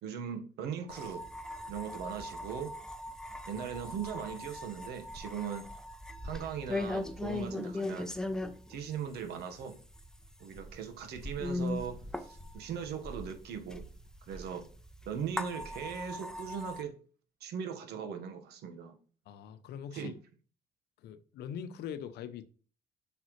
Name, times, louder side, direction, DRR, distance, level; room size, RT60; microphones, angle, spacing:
voice 1, 0.0-1.2 1.7-2.7 3.4-5.7 6.2-8.1 8.7-9.8 10.4-13.8 14.3-14.6 15.0-17.0 17.4-18.9 19.9-20.1, right 7 dB, 75° right, 1.4 m, -39 dB
sound 1, 0.9-16.8, left 2 dB, 5° left, 0.7 m, -40 dB
voice 2, 19.3-20.1 21.0-22.4, left 8 dB, 75° left, 0.8 m, -42 dB
8.3 x 5.9 x 3.2 m
cardioid pair, 110°, 17 cm